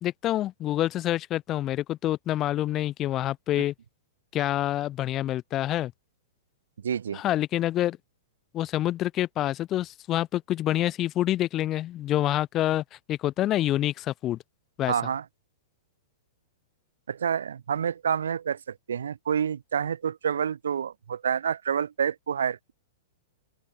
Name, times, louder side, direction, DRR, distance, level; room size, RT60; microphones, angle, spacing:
voice 1, 0.0-3.7 4.3-5.9 7.1-8.0 8.5-14.4 14.8-14.9, left 13 dB, 30° left, 0.4 m, -27 dB
voice 2, 6.8-7.2 14.9-15.2 17.1-22.7, right 8 dB, 80° right, 0.7 m, -28 dB
open air
hypercardioid pair, 120°, 0 cm